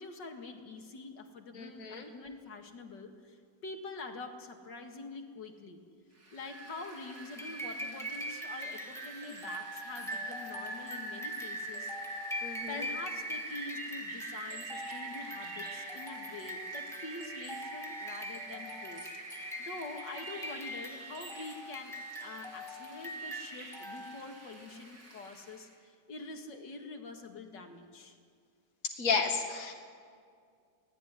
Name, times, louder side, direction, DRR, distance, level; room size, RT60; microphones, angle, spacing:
voice 1, 0.0-5.8 6.3-11.9 12.7-21.9 22.2-28.2, left 3 dB, 85° left, 4 dB, 2.6 m, -45 dB
voice 2, 1.5-2.1 12.4-12.8 28.8-29.7, left 5 dB, 50° left, 2 dB, 2.3 m, -32 dB
Rain, 6.2-25.7, right 2 dB, 85° right, 4.8 m, -45 dB
sound 1, 7.4-24.4, equal, ahead, 1.9 m, -43 dB
24.0 x 17.5 x 9.7 m, 2.2 s
omnidirectional pair, 1.9 m